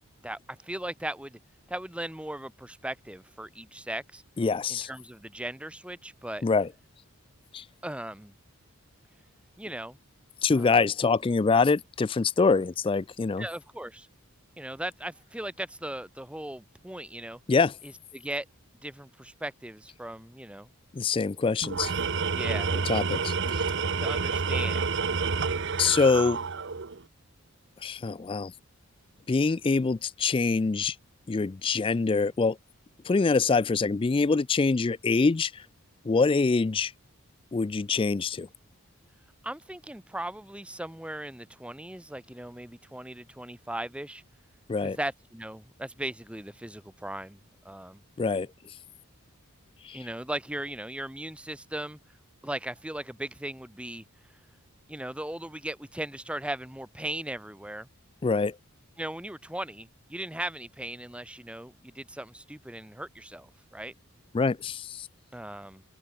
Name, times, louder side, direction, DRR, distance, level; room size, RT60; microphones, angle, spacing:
voice 1, 0.2-1.4 1.7-4.2 4.7-6.4 7.8-8.3 9.6-10.0 10.5-10.8 13.4-14.1 14.6-17.4 17.8-18.5 18.8-20.7 22.3-22.7 24.0-24.9 39.4-44.2 44.8-47.4 47.6-48.0 49.9-52.0 52.4-54.0 54.9-57.9 59.0-63.9 65.3-65.8, right 1 dB, 5° right, 0.9 m, -38 dB
voice 2, 4.4-4.9 6.4-6.7 7.5-7.6 10.4-13.5 17.5-17.8 20.9-21.9 22.7-23.3 25.8-26.5 27.8-28.5 29.3-31.0 31.3-32.6 33.0-35.6 36.0-36.9 37.5-38.5 44.7-45.0 48.2-48.5 49.8-50.1 58.2-58.6 64.3-65.1, left 4 dB, 25° left, 0.3 m, -25 dB
Tools, 21.6-27.0, right 5 dB, 55° right, 0.9 m, -29 dB
open air
head